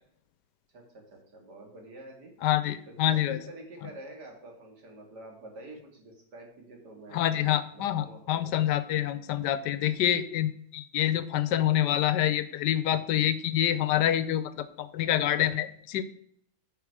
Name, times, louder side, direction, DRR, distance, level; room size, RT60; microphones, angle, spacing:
voice 1, 0.7-2.3 2.9-8.5, right 2 dB, 80° right, 1 dB, 2.7 m, -47 dB
voice 2, 2.4-3.4 7.1-16.0, left 11 dB, 85° left, 14 dB, 1.3 m, -27 dB
9.5 x 5.6 x 4.8 m, 0.68 s
omnidirectional pair, 1.8 m